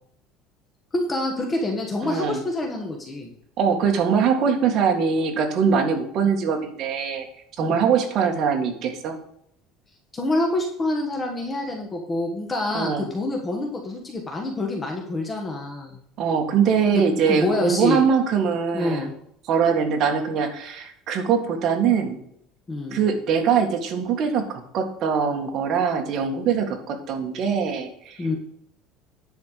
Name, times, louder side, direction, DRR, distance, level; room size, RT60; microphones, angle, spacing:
voice 1, 0.9-3.3 7.6-7.8 10.1-16.0 16.9-18.0 18.7-19.1 22.7-23.0 28.2-28.4, left 2 dB, 15° left, 1 dB, 1.4 m, -26 dB
voice 2, 2.0-2.4 3.6-7.3 7.6-9.2 12.7-13.1 16.2-19.1 19.5-22.2 22.9-28.4, right 6 dB, 45° right, 3 dB, 1.8 m, -22 dB
10.0 x 4.5 x 6.6 m, 0.71 s
cardioid pair, 155°, 0 cm